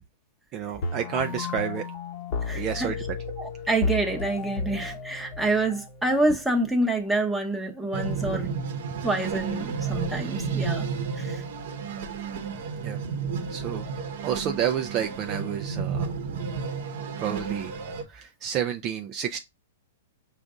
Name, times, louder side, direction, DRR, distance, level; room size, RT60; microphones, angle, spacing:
voice 1, 0.5-1.8 2.5-3.0 12.8-13.0 13.5-13.8 14.2-16.1 17.2-17.7 18.1-19.4, right 9 dB, 30° right, 0.4 m, -29 dB
sound 1, 0.8-6.8, left 4 dB, 50° left, 1.0 m, -33 dB
voice 2, 2.4-3.1 3.4-8.5 9.0-10.9 11.2-11.4, right 2 dB, ahead, 0.8 m, -27 dB
sound 2, 7.9-18.0, right 5 dB, 60° right, 0.9 m, -31 dB
5.1 x 2.4 x 3.6 m
hypercardioid pair, 140°, 0 cm